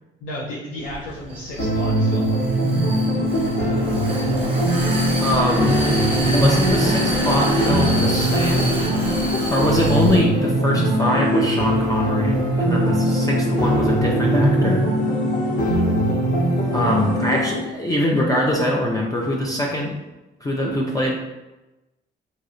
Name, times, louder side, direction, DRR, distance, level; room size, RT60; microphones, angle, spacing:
voice 1, 0.2-2.4, left 1 dB, 85° left, -5 dB, 0.7 m, -33 dB
Vehicle, 0.8-10.2, right 1 dB, 30° right, 0.8 m, -28 dB
sound 1, 1.6-17.6, equal, 40° left, 1.0 m, -21 dB
sound 2, 3.3-14.7, right 1 dB, 65° right, 0.4 m, -31 dB
voice 2, 5.2-5.8 6.3-8.7 9.5-14.8 16.7-19.9 20.4-21.2, left 1 dB, 20° left, -2 dB, 0.4 m, -23 dB
3.0 x 2.8 x 2.6 m, 1.0 s
cardioid pair, 90°, 20 cm